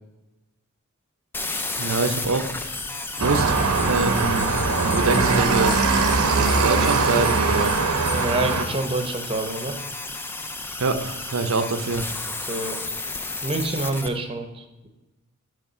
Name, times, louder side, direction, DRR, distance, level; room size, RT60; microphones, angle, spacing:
sound 1, 1.3-14.1, left 3 dB, 10° left, 0.4 m, -33 dB
voice 1, 1.8-2.5 3.2-3.6 3.9-4.6 4.8-5.8 6.3-7.7 10.8-12.1, right 3 dB, 60° right, 9 dB, 0.6 m, -25 dB
sound 2, 2.5-8.6, left 6 dB, 65° left, 1.6 m, -38 dB
sound 3, 3.2-8.6, right 3 dB, 90° right, 0.8 m, -21 dB
voice 2, 8.1-9.8 12.2-12.8 13.4-14.9, right 2 dB, 25° right, 5 dB, 0.8 m, -27 dB
8.5 x 3.4 x 5.5 m, 1.0 s
head